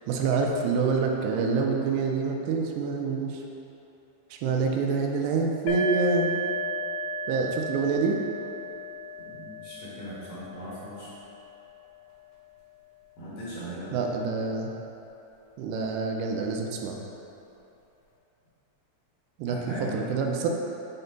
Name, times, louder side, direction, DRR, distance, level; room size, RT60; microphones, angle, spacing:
voice 1, 0.1-3.4 4.4-6.4 7.3-8.2 13.9-14.7 15.6-17.0 19.4-20.5, right 4 dB, 85° right, 1 dB, 2.9 m, -26 dB
sound 1, 5.7-13.2, right 1 dB, 90° left, 2.9 m, -35 dB
voice 2, 9.3-11.1 13.2-14.0 19.5-20.2, equal, 60° left, -9 dB, 2.7 m, -38 dB
7.8 x 4.3 x 3.9 m, 2.9 s
omnidirectional pair, 4.9 m